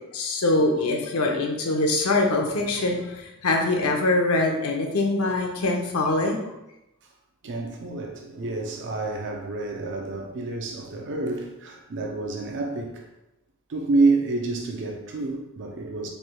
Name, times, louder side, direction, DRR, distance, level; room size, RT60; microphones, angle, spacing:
voice 1, 0.1-6.4, left 2 dB, 75° left, 0.7 m, -23 dB
voice 2, 7.4-13.1 13.7-16.1, right 3 dB, 55° right, 0.5 m, -28 dB
4.2 x 3.2 x 2.2 m
head